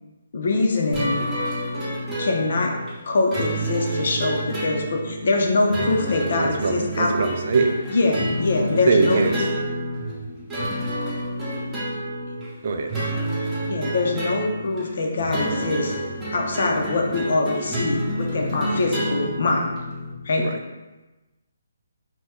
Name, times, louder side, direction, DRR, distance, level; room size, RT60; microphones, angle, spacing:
voice 1, 0.3-1.2 2.2-2.7 3.0-7.1 7.9-9.5 13.7-15.9 16.3-19.7 20.2-20.5, left 3 dB, 60° left, 1 dB, 0.6 m, -23 dB
sound 1, 0.9-20.1, right 1 dB, 15° right, 0.8 m, -29 dB
voice 2, 6.4-7.8 8.9-9.5 12.6-13.3 20.4-20.6, right 4 dB, 50° right, 4 dB, 0.4 m, -23 dB
2.9 x 2.2 x 3.5 m, 1.1 s
figure-of-eight pair, 145°, 0 cm